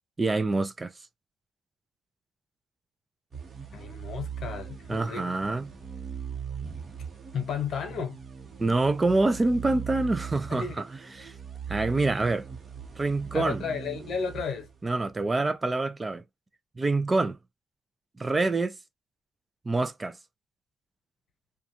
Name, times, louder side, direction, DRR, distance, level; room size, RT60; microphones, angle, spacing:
voice 1, 0.2-0.9 4.9-5.6 8.6-10.8 11.2-11.3 11.7-12.5 13.0-13.6 14.8-16.2 16.8-17.4 18.2-18.7 19.7-20.2, right 3 dB, 25° right, 0.4 m, -26 dB
sound 1, 3.3-15.2, right 7 dB, 40° right, 0.9 m, -40 dB
voice 2, 3.7-5.5 7.3-8.2 10.5-10.8 13.3-14.7, left 6 dB, 65° left, 0.9 m, -33 dB
2.4 x 2.3 x 2.7 m
cardioid pair, 90°, 0 cm